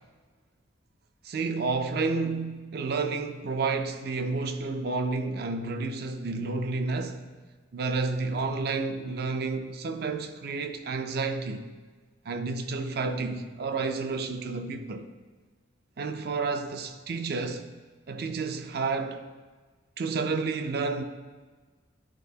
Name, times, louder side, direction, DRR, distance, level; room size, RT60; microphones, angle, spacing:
voice 1, 1.2-7.3 7.7-11.6 12.3-15.1 16.0-17.7 18.1-19.3 20.0-21.0, right 4 dB, 55° right, 0.4 m, -30 dB
10.5 x 3.9 x 2.7 m
head